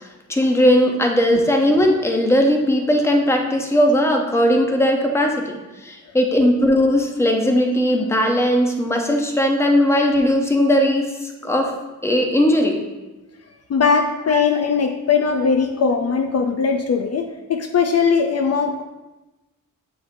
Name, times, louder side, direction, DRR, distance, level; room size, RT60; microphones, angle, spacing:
voice 1, 0.3-11.7 12.0-12.8 14.3-14.4, equal, 10° left, 2 dB, 0.6 m, -18 dB
voice 2, 13.7-18.8, left 5 dB, 55° left, 5 dB, 0.4 m, -20 dB
7.8 x 5.0 x 2.6 m, 1.1 s
wide cardioid pair, 160°, 31 cm